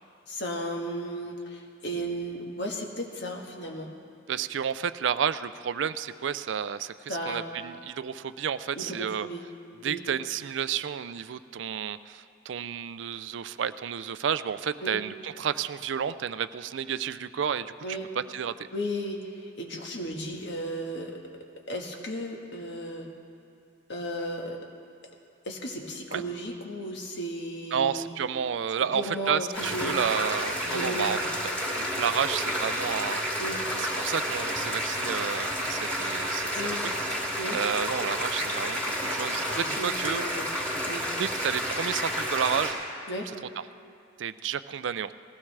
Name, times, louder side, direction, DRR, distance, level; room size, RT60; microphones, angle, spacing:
voice 1, 0.3-3.9 7.1-7.4 8.7-9.4 9.8-10.0 14.8-15.0 17.8-18.1 18.7-21.2 21.7-23.1 23.9-24.6 25.4-28.1 28.9-30.0 30.6-31.2 33.4-34.0 36.5-36.8 37.3-37.6 39.5-40.5 40.9-41.1 43.1-43.3, equal, 65° left, 1 dB, 1.5 m, -35 dB
voice 2, 4.3-9.3 9.8-18.7 26.1-26.2 27.7-33.2 33.8-36.9 37.5-40.3 41.2-42.8 44.2-45.1, right 7 dB, 70° right, 14 dB, 0.4 m, -31 dB
sound 1, 29.5-42.7, equal, 5° left, 3.2 m, -30 dB
19.5 x 15.5 x 3.3 m, 2.4 s
head